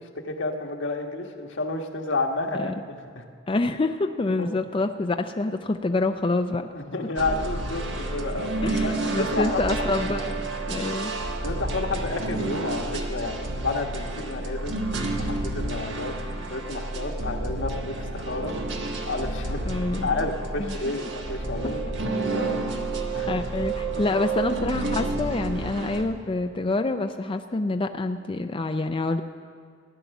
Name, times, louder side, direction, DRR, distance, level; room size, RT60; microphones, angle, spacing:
voice 1, 0.2-3.2 4.4-4.5 6.7-8.5 8.8-9.7 10.8-10.9 11.4-14.8 15.2-16.1 16.5-18.6 19.0-19.7 20.0-22.5 23.1-23.4 24.1-24.2, left 2 dB, 85° left, 3 dB, 1.4 m, -31 dB
voice 2, 3.5-6.7 8.6-11.1 19.7-20.2 20.6-20.8 21.6-21.7 23.3-29.2, left 2 dB, 30° left, 6 dB, 0.4 m, -27 dB
sound 1, 7.2-26.0, right 2 dB, 70° right, 1.4 m, -30 dB
16.0 x 10.5 x 7.0 m, 2.1 s
head